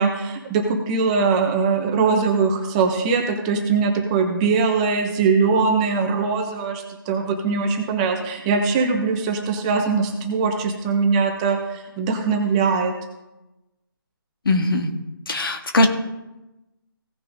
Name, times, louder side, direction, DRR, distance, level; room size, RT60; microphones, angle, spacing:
voice 1, 0.0-12.9, right 5 dB, 15° right, 3 dB, 1.0 m, -21 dB
voice 2, 14.5-14.9 15.3-15.9, left 1 dB, 65° left, 4 dB, 1.8 m, -19 dB
17.0 x 5.9 x 3.6 m, 0.98 s
figure-of-eight pair, 160°, 12 cm